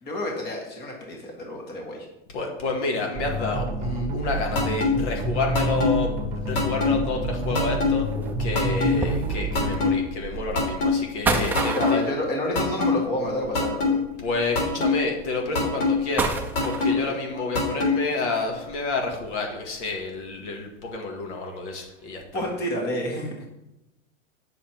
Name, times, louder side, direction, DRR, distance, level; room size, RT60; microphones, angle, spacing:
voice 1, 0.0-2.1 11.3-11.5 11.8-14.0 16.9-17.2 22.3-23.5, left 1 dB, 25° left, 0 dB, 1.8 m, -29 dB
voice 2, 2.3-8.1 8.4-12.0 14.2-22.4, left 3 dB, 70° left, 1 dB, 1.9 m, -29 dB
sound 1, 3.1-9.9, right 1 dB, 20° right, 1.3 m, -29 dB
sound 2, 3.7-17.4 18.1-20.5 20.8-21.0 21.5-21.8 22.1-22.5, right 3 dB, 5° right, 0.4 m, -34 dB
sound 3, 4.6-4.9 5.5-5.9 6.6-6.9 7.6-7.9 8.6-8.9 9.6-9.9 10.6-10.9 11.6-11.9 12.6-12.9 13.6-13.9 14.6-14.9 15.6-15.9 16.6-16.9 17.6-17.9, left 3 dB, 50° left, 3.2 m, -22 dB
7.9 x 6.4 x 4.5 m, 0.93 s
supercardioid pair, 145°, 37 cm